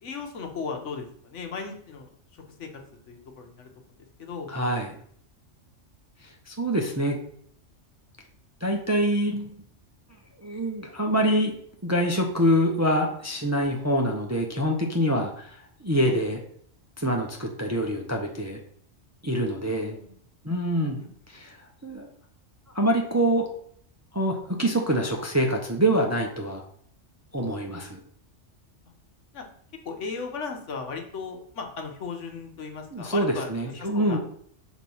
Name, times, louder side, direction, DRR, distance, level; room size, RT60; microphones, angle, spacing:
voice 1, 0.0-2.7 3.1-4.5 16.0-16.2 19.8-20.1 21.0-21.1 29.3-29.5 29.8-34.2, left 4 dB, 75° left, 4 dB, 1.3 m, -37 dB
voice 2, 4.5-4.9 6.2-7.2 8.6-9.6 10.4-11.6 11.8-16.4 17.0-18.6 19.2-20.0 20.4-21.0 21.3-22.1 22.7-23.5 24.1-26.6 27.3-28.0 32.9-34.2, equal, 20° right, 2 dB, 0.5 m, -25 dB
6.6 x 3.0 x 5.4 m, 0.63 s
omnidirectional pair, 1.3 m